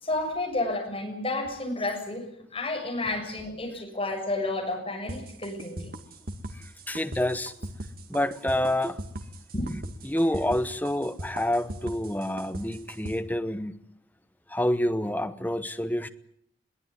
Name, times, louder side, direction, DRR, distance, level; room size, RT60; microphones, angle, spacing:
voice 1, 0.0-5.9 9.5-9.7, left 2 dB, 30° left, 6.9 m, -31 dB
sound 1, 5.1-13.2, right 1 dB, 50° right, 2.0 m, -38 dB
voice 2, 6.5-7.5 8.1-9.0 10.0-13.8 14.5-16.1, left 1 dB, 10° left, 1.1 m, -28 dB
23.0 x 17.0 x 9.6 m
head